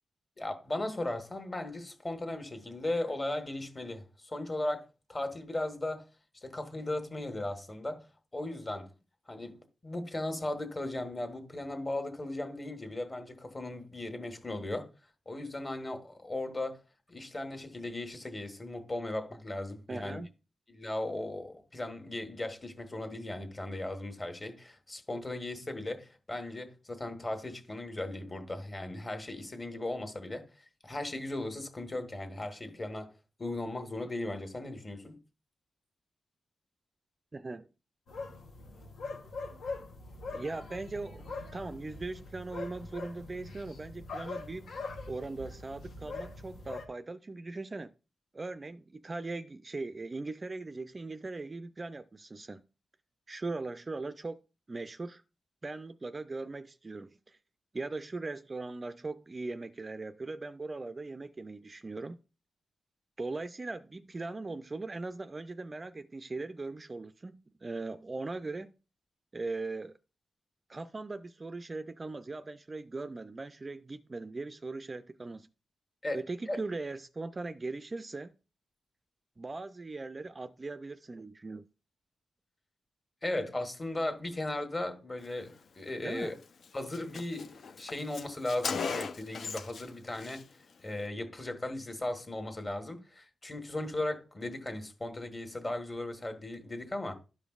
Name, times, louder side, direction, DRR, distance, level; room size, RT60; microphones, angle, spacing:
voice 1, 0.4-6.0 6.4-8.1 8.3-8.9 9.3-14.9 15.2-16.8 17.1-20.2 20.7-30.4 30.8-33.1 33.4-35.2 76.0-76.2 76.5-76.6 83.2-86.3 86.7-90.4 90.8-97.2, left 1 dB, 25° left, 1.4 m, -37 dB
voice 2, 19.9-20.3 37.3-37.7 40.3-44.7 45.1-47.9 48.3-52.6 53.3-54.4 54.7-55.2 55.6-57.4 57.7-62.2 63.2-68.7 69.3-69.9 70.7-75.5 76.1-78.3 79.4-81.6 86.0-86.3, right 3 dB, 30° right, 0.3 m, -39 dB
sound 1, 38.1-46.8, left 3 dB, 90° left, 1.5 m, -42 dB
Car, 86.2-86.4 86.6-86.7 86.9-89.9 90.1-90.4, left 5 dB, 65° left, 0.5 m, -37 dB
12.5 x 5.1 x 2.4 m
cardioid pair, 95°, 0 cm